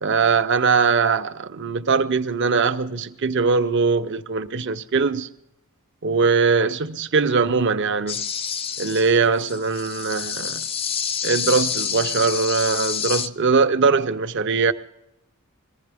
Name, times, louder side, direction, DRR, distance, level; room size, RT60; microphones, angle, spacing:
voice 1, 0.0-5.3 6.0-8.3 8.8-10.7 11.2-14.7, right 4 dB, 55° right, 0.7 m, -21 dB
sound 1, 8.1-13.3, left 7 dB, 25° left, 0.4 m, -28 dB
22.0 x 15.5 x 3.5 m
head